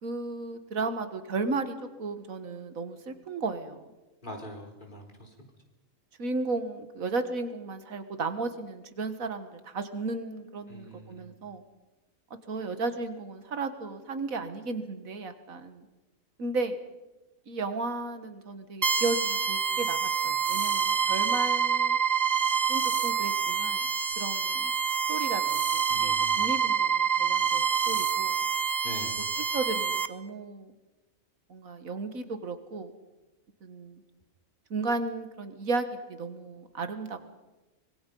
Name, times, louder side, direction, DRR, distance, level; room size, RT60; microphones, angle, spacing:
voice 1, 0.0-3.9 6.2-11.6 12.5-15.9 16.4-16.8 17.5-22.0 22.7-23.9 24.2-24.7 25.1-28.4 29.5-30.7 31.5-32.9 33.6-34.0 34.7-37.2, right 3 dB, 85° right, 9 dB, 1.9 m, -34 dB
voice 2, 4.2-5.3 10.7-11.3 25.9-26.5 28.8-29.2, equal, 35° left, 1 dB, 4.0 m, -43 dB
sound 1, 18.8-30.1, right 7 dB, 35° right, 0.9 m, -27 dB
25.0 x 22.0 x 5.4 m, 1.1 s
omnidirectional pair, 1.4 m